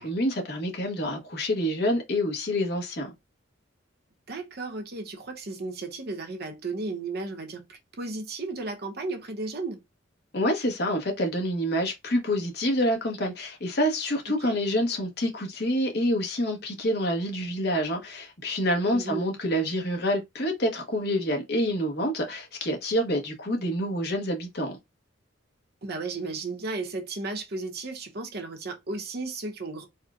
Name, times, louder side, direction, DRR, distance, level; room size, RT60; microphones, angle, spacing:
voice 1, 0.0-3.1 10.3-24.8, equal, 55° left, 1.1 m, -27 dB
voice 2, 4.3-9.8 14.3-14.6 18.9-19.3 25.8-29.9, right 3 dB, 55° right, 0.8 m, -34 dB
4.2 x 2.2 x 2.4 m
head